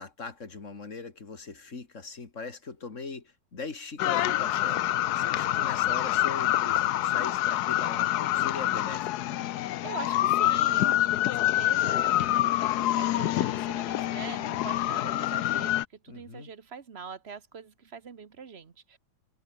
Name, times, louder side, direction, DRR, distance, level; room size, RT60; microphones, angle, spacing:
voice 1, 0.0-4.8 5.1-9.5 16.1-16.5, left 4 dB, 35° left, 2.7 m, -40 dB
sound 1, 4.0-15.8, left 14 dB, 70° left, 1.0 m, -26 dB
voice 2, 5.3-5.7 9.6-15.8 16.0-19.0, right 6 dB, 35° right, 1.2 m, -43 dB
omnidirectional pair, 2.2 m